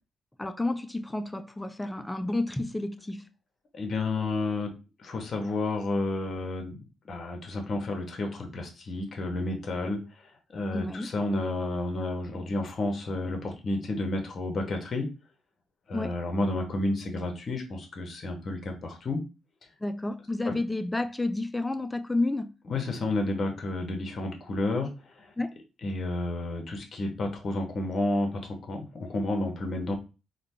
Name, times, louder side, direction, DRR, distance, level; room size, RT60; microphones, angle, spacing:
voice 1, 0.4-3.3 10.7-11.1 15.9-16.1 19.8-22.5 25.4-25.5, left 2 dB, 10° left, 0.3 m, -30 dB
voice 2, 3.7-4.7 5.0-10.0 10.5-15.1 15.9-19.2 20.4-20.6 22.7-24.9 25.2-25.3 25.8-29.9, left 2 dB, 45° left, 1.1 m, -31 dB
3.9 x 2.2 x 3.2 m
cardioid pair, 90°, 0 cm